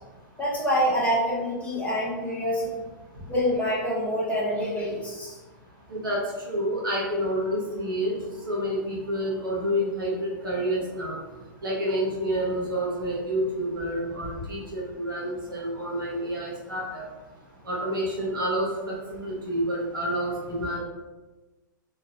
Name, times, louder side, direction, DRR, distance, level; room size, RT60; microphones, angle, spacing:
voice 1, 0.4-2.8 3.3-5.3, equal, 10° left, -6 dB, 1.0 m, -26 dB
voice 2, 5.9-8.1 8.5-11.2 11.6-17.0 17.7-20.8, equal, 90° right, -4 dB, 1.0 m, -28 dB
3.1 x 2.3 x 2.5 m, 1.2 s
hypercardioid pair, 115°, 11 cm